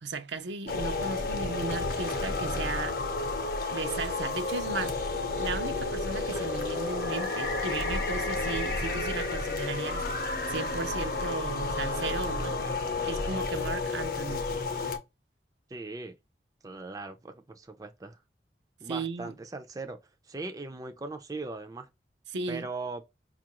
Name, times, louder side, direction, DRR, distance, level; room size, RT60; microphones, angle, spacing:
voice 1, 0.0-3.0 3.7-5.0 5.4-10.1 10.5-12.6 13.0-14.4 18.9-19.3 22.3-22.7, right 3 dB, 80° right, 0.6 m, -35 dB
sound 1, 0.7-15.0, left 3 dB, 55° left, 0.7 m, -31 dB
voice 2, 15.7-16.1 16.6-18.2 18.8-20.0 20.3-21.9 22.5-23.0, right 3 dB, 20° right, 0.4 m, -39 dB
5.2 x 2.4 x 2.8 m
head